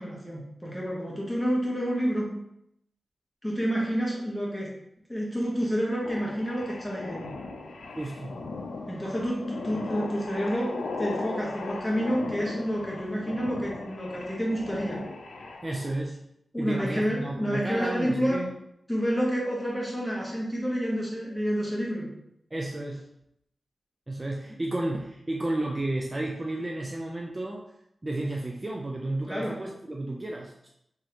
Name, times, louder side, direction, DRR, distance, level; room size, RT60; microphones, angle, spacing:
voice 1, 0.0-2.3 3.4-4.7 5.1-7.3 8.9-15.0 16.5-18.4 18.9-22.1 29.3-29.6, equal, ahead, -5 dB, 1.5 m, -29 dB
sound 1, 6.0-16.0, left 3 dB, 90° left, 0.4 m, -37 dB
voice 2, 7.9-8.3 15.6-16.2 16.6-18.5 22.5-23.1 24.1-27.6 28.0-30.7, right 1 dB, 35° right, 0 dB, 0.4 m, -32 dB
3.7 x 3.1 x 2.9 m, 0.79 s
cardioid pair, 45°, 0 cm